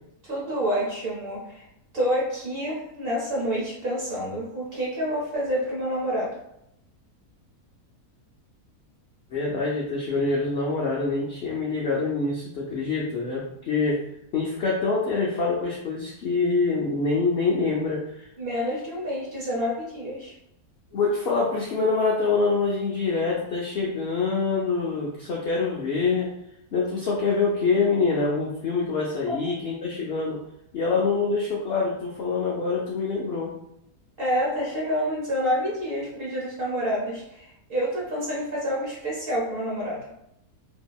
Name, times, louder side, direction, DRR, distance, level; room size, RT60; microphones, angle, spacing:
voice 1, 0.2-1.7 1.9-6.4 18.4-20.3 29.3-29.4 34.2-40.1, equal, 45° right, -5 dB, 0.9 m, -28 dB
voice 2, 9.3-14.0 14.3-18.3 20.9-26.3 26.7-30.4 30.7-33.5, left 4 dB, 90° left, -4 dB, 0.5 m, -25 dB
2.8 x 2.6 x 2.2 m, 0.78 s
omnidirectional pair, 1.7 m